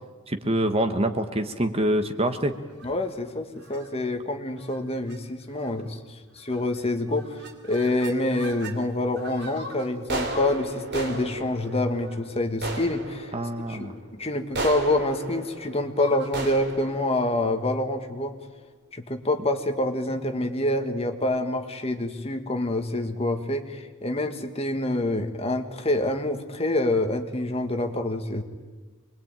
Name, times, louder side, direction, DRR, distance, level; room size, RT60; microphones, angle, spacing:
voice 1, 0.3-2.5 13.3-13.9, right 1 dB, 25° right, 8 dB, 1.3 m, -25 dB
Goose Hunt, 2.7-3.1 3.6-3.9 4.6-4.8 5.1-5.2 5.5-5.9 6.5-6.8 7.1-8.8 9.2-18.3, right 2 dB, 55° right, 3.2 m, -36 dB
voice 2, 2.8-13.3 13.7-18.3 18.9-28.4, left 1 dB, 30° left, 6 dB, 1.7 m, -27 dB
25.5 x 21.5 x 9.0 m, 1.3 s
head